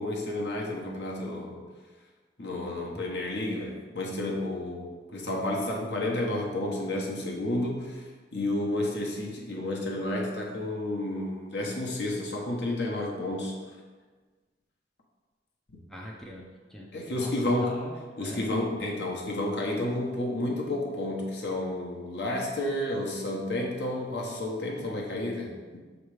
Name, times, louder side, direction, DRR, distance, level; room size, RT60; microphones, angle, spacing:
voice 1, 0.0-1.6 2.4-8.0 8.3-13.6 16.9-17.8 18.2-25.8, left 1 dB, 70° left, -1 dB, 1.1 m, -31 dB
voice 2, 15.9-18.4, equal, ahead, -3 dB, 0.6 m, -43 dB
6.5 x 3.1 x 4.8 m, 1.4 s
head